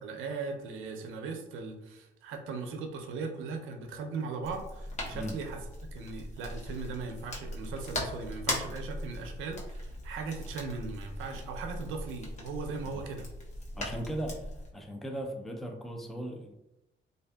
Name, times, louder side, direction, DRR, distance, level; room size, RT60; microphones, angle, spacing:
voice 1, 0.0-5.6 5.9-13.3, right 4 dB, 90° right, 4 dB, 0.5 m, -38 dB
sound 1, 4.4-14.7, left 1 dB, 35° left, 0.7 m, -39 dB
voice 2, 13.8-16.5, right 1 dB, ahead, 2 dB, 0.4 m, -38 dB
2.6 x 2.5 x 2.2 m, 0.88 s
cardioid pair, 90°, 20 cm